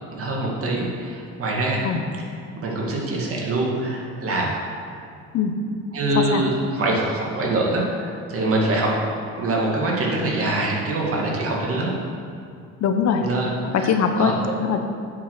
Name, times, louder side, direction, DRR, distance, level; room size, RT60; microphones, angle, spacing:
voice 1, 0.1-1.8 2.6-4.8 5.9-9.0 9.4-11.9 13.2-14.3, right 2 dB, 45° right, -2 dB, 2.1 m, -24 dB
voice 2, 12.8-13.2 13.7-14.8, left 6 dB, 55° left, 6 dB, 0.8 m, -21 dB
8.4 x 4.9 x 6.4 m, 2.4 s
cardioid pair, 95°, 31 cm